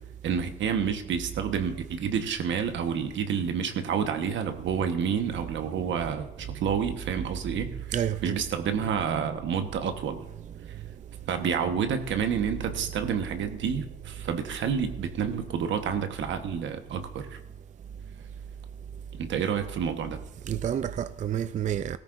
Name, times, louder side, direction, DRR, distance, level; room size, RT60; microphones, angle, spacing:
voice 1, 0.2-7.7 8.2-10.2 11.3-17.4 19.2-20.2, right 7 dB, 75° right, 1.2 m, -29 dB
voice 2, 7.9-8.5 10.3-10.8 12.9-13.0 13.3-13.5 20.4-22.0, right 9 dB, 40° right, 0.4 m, -30 dB
17.0 x 13.5 x 2.6 m
cardioid pair, 90°, 20 cm